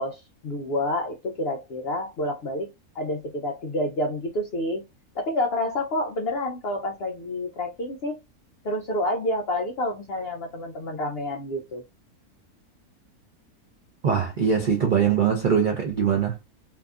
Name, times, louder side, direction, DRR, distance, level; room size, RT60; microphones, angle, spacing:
voice 1, 0.0-2.7 2.9-4.8 5.2-8.2 8.6-11.8, left 1 dB, 75° left, 0.5 m, -28 dB
voice 2, 14.0-16.4, right 7 dB, 70° right, 0.4 m, -22 dB
2.7 x 2.4 x 2.3 m
omnidirectional pair, 1.6 m